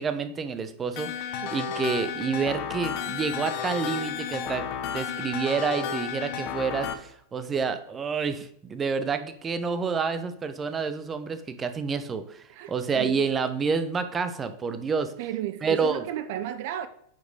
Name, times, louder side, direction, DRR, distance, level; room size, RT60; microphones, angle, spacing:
voice 1, 0.0-4.6 4.9-15.1 15.6-16.0, right 5 dB, 20° right, 0.9 m, -29 dB
sound 1, 1.0-6.9, left 7 dB, 45° left, 1.0 m, -32 dB
voice 2, 1.4-1.8 12.5-13.2 15.2-16.9, right 12 dB, 50° right, 0.6 m, -34 dB
9.3 x 5.1 x 4.8 m
figure-of-eight pair, 90°, 0 cm